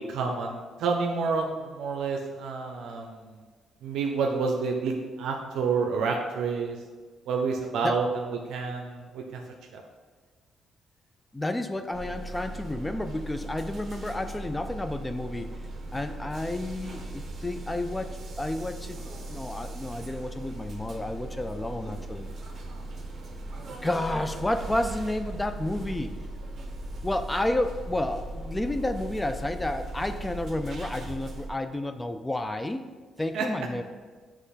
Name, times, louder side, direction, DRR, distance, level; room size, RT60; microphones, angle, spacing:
voice 1, 0.0-3.4 3.8-6.8 7.3-8.2 8.5-9.4 9.7-9.8 33.3-33.5, right 4 dB, 80° right, 2 dB, 0.5 m, -29 dB
voice 2, 11.3-15.5 15.9-22.3 23.7-26.2 27.0-32.8 33.2-33.8, left 1 dB, 15° left, 9 dB, 0.4 m, -31 dB
sound 1, 11.9-31.5, right 2 dB, 50° right, 1.0 m, -38 dB
7.6 x 3.0 x 4.1 m, 1.4 s
cardioid pair, 90°, 0 cm